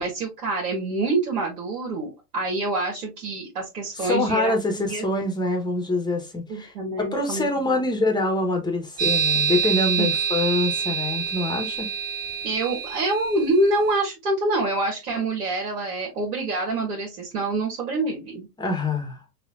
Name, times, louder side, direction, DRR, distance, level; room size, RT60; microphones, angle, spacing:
voice 1, 0.0-5.0 6.5-7.8 10.0-10.1 12.4-18.5, right 2 dB, 70° right, 1.6 m, -26 dB
voice 2, 3.9-6.7 7.1-11.9 18.6-19.2, left 2 dB, 10° left, 1.2 m, -25 dB
sound 1, 9.0-13.7, right 7 dB, 30° right, 2.1 m, -26 dB
5.8 x 2.7 x 2.6 m
figure-of-eight pair, 95°, 47 cm